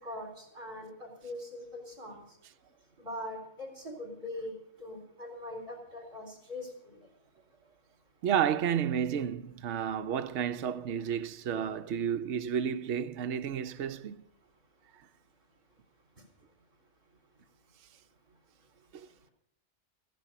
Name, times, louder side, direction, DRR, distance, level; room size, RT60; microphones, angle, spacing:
voice 1, 0.0-2.2 3.0-4.5 4.8-7.0, left 1 dB, 45° right, 4.0 m, -42 dB
voice 2, 8.2-14.2, right 8 dB, 70° right, 1.0 m, -31 dB
15.0 x 11.0 x 6.8 m
omnidirectional pair, 1.3 m